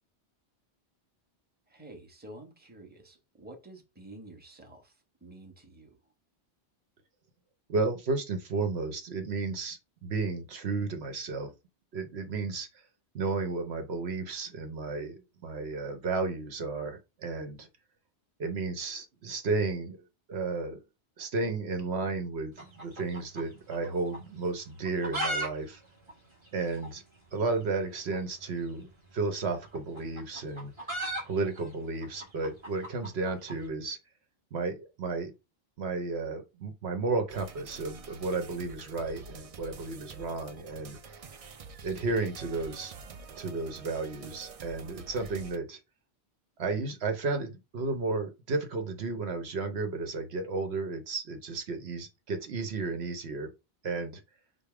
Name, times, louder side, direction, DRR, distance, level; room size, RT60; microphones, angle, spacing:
voice 1, 1.7-6.0, right 1 dB, 10° right, 1.0 m, -50 dB
voice 2, 7.7-11.5 11.9-12.7 13.1-17.7 18.4-20.0 20.3-20.8 21.2-25.8 26.5-27.0 27.3-30.7 31.2-34.0 34.5-35.3 35.8-41.0 41.8-42.9 43.4-45.8 46.6-53.5 53.8-54.2, right 3 dB, 75° right, 1.1 m, -33 dB
sound 1, 22.5-23.9 24.1-24.2 24.8-25.5 25.7-25.8 26.1-26.2 26.8-26.9 28.1-28.2 29.4-33.6, right 1 dB, 25° right, 1.5 m, -36 dB
sound 2, 37.3-45.6, right 5 dB, 50° right, 0.4 m, -47 dB
5.2 x 2.1 x 4.8 m
omnidirectional pair, 1.1 m